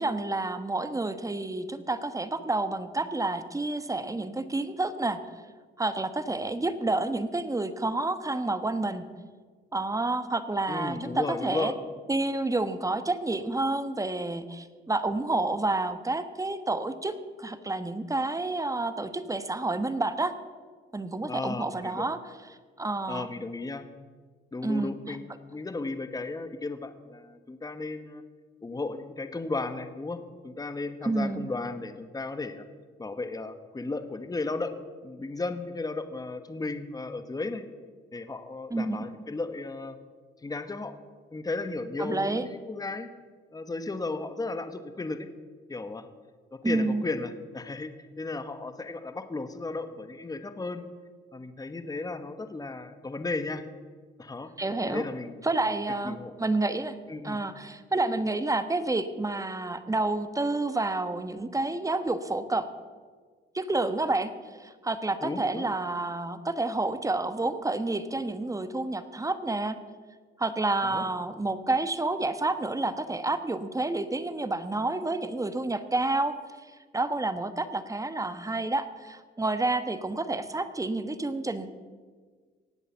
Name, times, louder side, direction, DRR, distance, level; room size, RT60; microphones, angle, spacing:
voice 1, 0.0-5.2 5.8-9.1 9.7-11.7 12.1-20.3 20.9-22.2 22.8-23.3 24.6-25.2 31.0-31.5 38.7-39.0 42.0-42.5 46.6-47.0 54.6-55.0 55.4-57.0 57.2-62.7 63.5-64.3 64.6-69.8 70.4-76.4 76.9-81.7, right 2 dB, 15° right, 11 dB, 1.1 m, -29 dB
voice 2, 10.7-11.8 21.3-22.0 23.1-23.8 24.5-28.2 28.6-30.2 30.4-32.6 33.0-34.7 35.0-37.6 38.1-40.0 40.4-41.0 41.3-43.1 43.5-45.3 45.7-46.1 46.6-50.8 51.3-53.6 54.2-54.5 54.8-55.4 56.0-56.3 57.1-57.4 65.2-65.7 70.8-71.0, left 3 dB, 20° left, 9 dB, 1.2 m, -34 dB
18.5 x 8.2 x 7.2 m, 1.5 s
cardioid pair, 90°, 20 cm